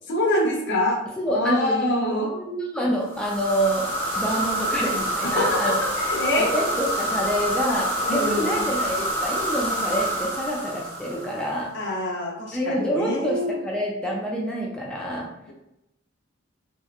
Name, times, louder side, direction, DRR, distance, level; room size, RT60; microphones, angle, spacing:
voice 1, 0.1-1.0 1.3-2.3 5.4-6.6 8.0-8.7 11.7-13.5, left 1 dB, 65° left, -2 dB, 0.6 m, -25 dB
voice 2, 1.2-2.0 2.3-5.8 6.4-11.7 12.5-15.3, equal, 5° left, -3 dB, 0.3 m, -27 dB
sound 1, 3.1-11.6, right 1 dB, 30° left, 1.1 m, -27 dB
2.8 x 2.1 x 2.3 m, 0.87 s
head